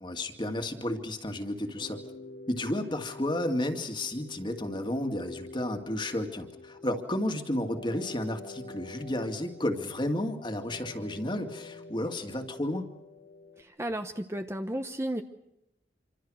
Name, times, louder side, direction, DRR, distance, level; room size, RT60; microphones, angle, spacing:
voice 1, 0.0-2.0 2.5-12.9, left 1 dB, 25° left, 6 dB, 2.3 m, -32 dB
sound 1, 1.6-13.6, left 2 dB, 60° left, 2.6 m, -47 dB
voice 2, 13.6-15.2, right 1 dB, 15° right, 7 dB, 1.0 m, -33 dB
27.0 x 25.0 x 6.5 m, 0.85 s
head